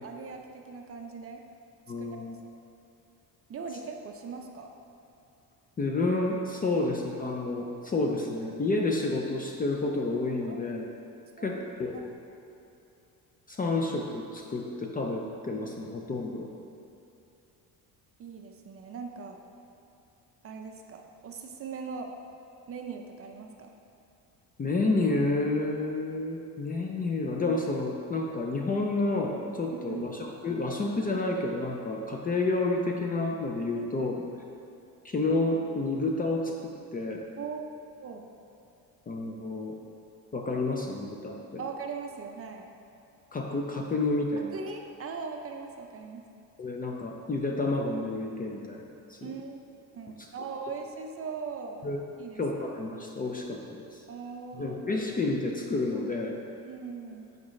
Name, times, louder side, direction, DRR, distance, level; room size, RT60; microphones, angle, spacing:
voice 1, 0.0-1.4 2.0-2.3 3.5-4.7 10.5-10.6 11.4-11.6 18.2-19.4 20.4-22.1 22.7-23.7 29.9-30.0 33.8-33.9 37.4-37.7 38.0-38.3 41.6-42.7 44.5-46.2 49.2-51.9 52.2-52.4 54.1-54.8 56.6-57.3, right 5 dB, 35° right, 3 dB, 0.5 m, -40 dB
voice 2, 1.9-2.4 5.8-10.9 11.4-12.1 13.5-16.5 24.6-34.3 35.0-37.3 39.1-39.7 40.3-41.6 43.3-44.6 46.6-48.8 49.1-49.3 50.2-50.3 51.8-52.0 52.4-54.0 54.5-56.3, left 2 dB, 25° left, 0 dB, 0.4 m, -30 dB
8.4 x 5.2 x 3.1 m, 2.7 s
cardioid pair, 140°, 38 cm